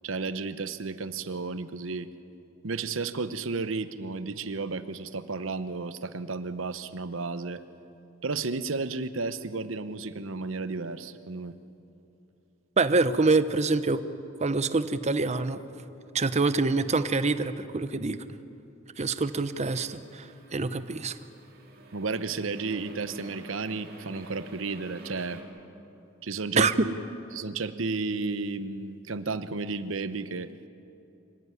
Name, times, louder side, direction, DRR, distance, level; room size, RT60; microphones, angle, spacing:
voice 1, 0.0-2.1 2.6-7.6 8.2-11.5 21.9-25.4 26.2-27.0 27.3-30.5, right 4 dB, 90° right, 13 dB, 0.9 m, -33 dB
voice 2, 12.8-14.0 14.4-15.6 16.1-18.2 19.0-21.2 26.6-26.7, right 3 dB, 35° right, 13 dB, 0.8 m, -25 dB
sound 1, 19.1-25.4, right 2 dB, 50° right, 3.2 m, -48 dB
25.5 x 15.0 x 9.7 m, 2.8 s
head